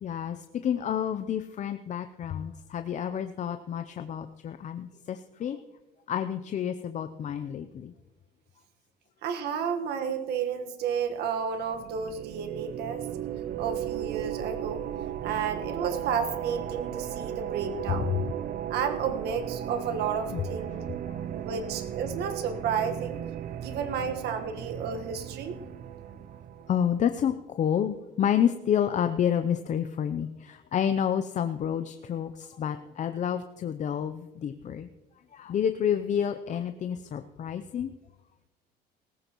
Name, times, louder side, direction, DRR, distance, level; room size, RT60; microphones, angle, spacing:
voice 1, 0.0-5.6 6.1-7.9 18.1-18.2 20.3-20.4 21.1-21.4 26.7-34.9 35.3-37.9, left 9 dB, 45° left, 9 dB, 0.6 m, -29 dB
voice 2, 9.2-13.1 13.6-14.8 15.2-18.2 18.7-20.8 21.3-23.2 23.6-25.6, right 7 dB, 75° right, 6 dB, 1.5 m, -32 dB
sound 1, 11.6-27.0, right 10 dB, 55° right, 0.5 m, -36 dB
17.5 x 14.5 x 3.0 m, 1.1 s
cardioid pair, 110°, 17 cm